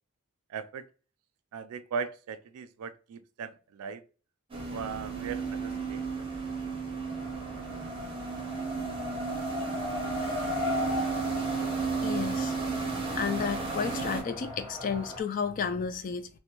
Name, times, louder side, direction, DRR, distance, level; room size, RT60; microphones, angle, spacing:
voice 1, 0.5-0.9 1.5-4.0 4.7-6.0, right 6 dB, 75° right, 0.3 m, -38 dB
sound 1, 4.5-14.2, right 5 dB, 25° right, 0.6 m, -34 dB
Race car auto racing, 7.0-15.2, left 2 dB, 65° left, 0.8 m, -37 dB
voice 2, 12.0-12.6 13.2-16.3, left 6 dB, 40° left, 0.3 m, -32 dB
2.6 x 2.1 x 2.8 m
head